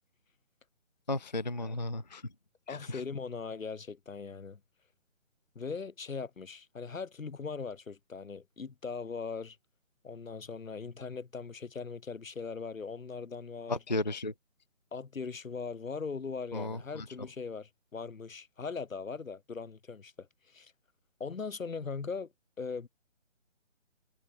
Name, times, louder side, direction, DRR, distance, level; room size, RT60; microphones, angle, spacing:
voice 1, 1.1-2.2 2.7-3.0 13.7-14.3 16.5-17.1, left 2 dB, 35° left, 0.4 m, -34 dB
voice 2, 2.7-4.6 5.5-9.6 10.0-13.8 14.9-20.3 20.5-20.7 21.2-22.3 22.6-22.9, left 5 dB, 85° left, 1.5 m, -40 dB
figure-of-eight pair, 160°, 39 cm